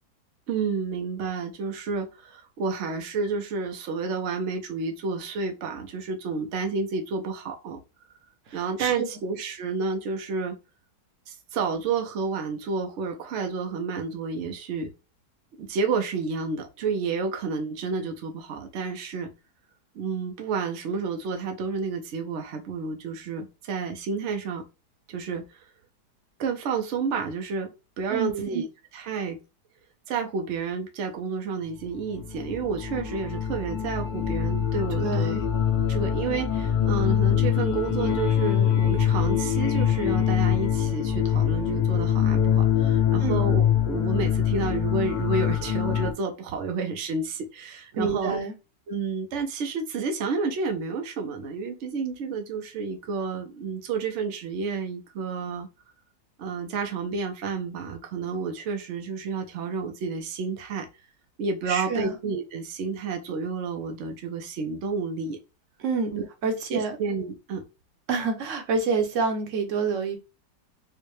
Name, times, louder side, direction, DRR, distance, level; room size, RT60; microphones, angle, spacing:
voice 1, 0.5-7.8 8.5-10.6 11.3-14.9 15.6-19.3 19.9-24.6 25.1-25.4 26.4-27.7 28.0-28.7 28.9-29.4 30.1-35.4 35.9-48.4 48.9-55.7 56.4-60.9 61.4-65.4 66.1-66.2 66.7-67.6, right 4 dB, 80° right, 0.6 m, -30 dB
voice 2, 8.5-9.1 28.1-28.5 35.0-35.4 43.2-43.4 47.9-48.5 61.7-62.2 65.8-66.1 66.4-67.0 68.1-70.2, right 4 dB, 55° right, 0.9 m, -27 dB
sound 1, 32.0-46.1, left 9 dB, 90° left, 1.4 m, -24 dB
4.6 x 2.2 x 3.0 m
omnidirectional pair, 1.9 m